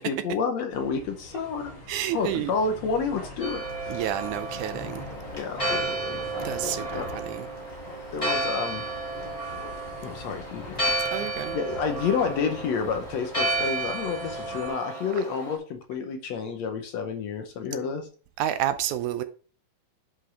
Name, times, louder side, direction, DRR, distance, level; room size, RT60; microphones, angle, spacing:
voice 1, 0.0-1.8 2.1-4.0 5.3-6.2 6.9-7.1 8.1-8.8 10.0-10.8 11.5-18.1, left 5 dB, 70° left, 1.9 m, -30 dB
sound 1, 0.7-14.7, left 2 dB, 45° left, 4.1 m, -42 dB
voice 2, 1.9-2.5 3.9-5.0 6.4-7.5 10.9-11.6 18.4-19.2, right 12 dB, 80° right, 1.9 m, -30 dB
Church bell, 3.4-15.6, right 2 dB, 10° left, 2.5 m, -32 dB
10.0 x 5.4 x 3.4 m
omnidirectional pair, 3.7 m